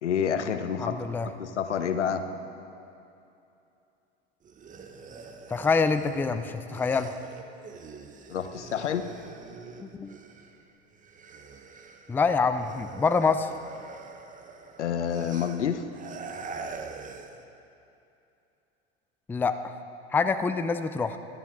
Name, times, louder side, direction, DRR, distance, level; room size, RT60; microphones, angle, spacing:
voice 1, 0.0-1.0 1.4-2.3 8.3-9.1 14.8-15.9, left 8 dB, 90° left, 9 dB, 0.9 m, -28 dB
voice 2, 0.8-1.3 5.5-7.1 9.8-10.2 12.1-13.5 19.3-19.7 20.1-21.2, left 4 dB, 5° left, 10 dB, 0.4 m, -26 dB
sound 1, 4.4-10.6 10.9-17.4, right 4 dB, 25° right, 1.0 m, -44 dB
18.5 x 13.0 x 3.7 m, 2.7 s
hypercardioid pair, 95°, 34 cm